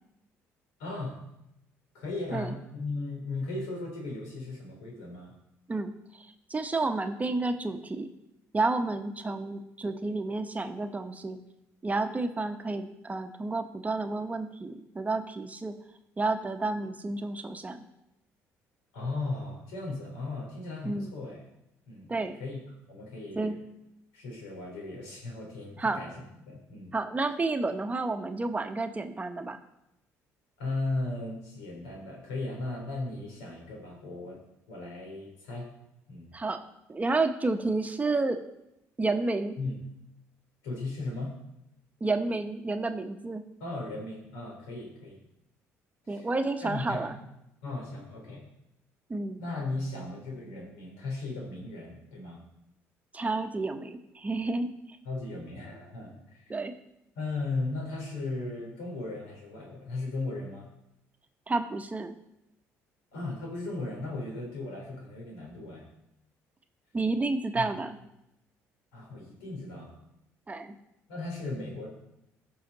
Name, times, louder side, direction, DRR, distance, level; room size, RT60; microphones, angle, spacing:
voice 1, 0.8-1.1 1.9-5.3 18.9-21.4 21.9-22.6 22.9-23.6 24.1-26.9 30.6-34.4 34.7-35.7 36.1-36.3 39.6-39.8 40.6-41.3 43.6-45.2 46.0-46.3 46.6-47.1 47.6-48.4 49.4-52.4 55.0-56.5 57.1-60.7 63.1-65.9 67.5-67.7 68.9-69.9 71.1-71.9, left 2 dB, 90° left, -1 dB, 3.3 m, -36 dB
voice 2, 6.5-8.1 8.5-11.4 11.8-15.7 16.2-17.8 20.8-21.1 22.1-22.4 23.4-23.5 25.8-26.0 26.9-29.6 36.3-36.6 36.9-38.4 39.0-39.6 42.0-43.4 46.1-47.2 49.1-49.4 53.1-55.0 56.5-56.7 61.5-62.1 66.9-68.0 70.5-70.8, right 3 dB, 20° right, 7 dB, 0.9 m, -30 dB
13.5 x 5.7 x 4.0 m, 0.85 s
supercardioid pair, 70°, 7 cm